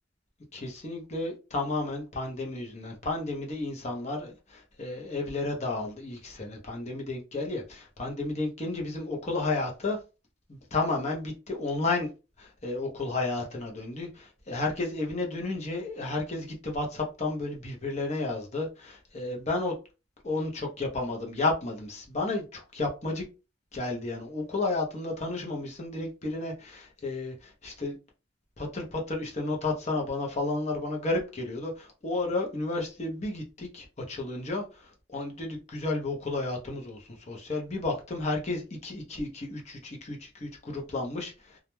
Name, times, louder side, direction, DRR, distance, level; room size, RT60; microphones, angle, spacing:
voice 1, 0.5-10.0 10.5-12.1 12.4-19.7 20.2-23.2 23.7-28.0 28.6-41.6, left 2 dB, 35° left, 0.7 m, -32 dB
2.4 x 2.1 x 3.0 m
head